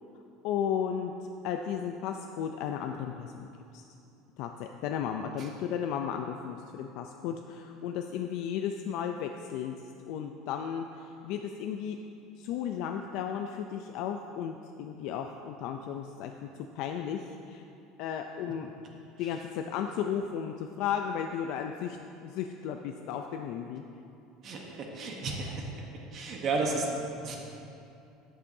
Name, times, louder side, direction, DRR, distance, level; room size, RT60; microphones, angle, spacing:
voice 1, 0.4-3.5 3.7-3.8 4.4-9.8 10.1-12.0 12.4-16.5 16.7-17.7 18.0-18.7 19.2-23.8, left 8 dB, 55° left, 5 dB, 0.3 m, -34 dB
voice 2, 24.4-25.7 26.1-27.4, right 3 dB, 35° right, 0 dB, 0.9 m, -33 dB
11.5 x 8.7 x 2.7 m, 2.7 s
cardioid pair, 165°, 0 cm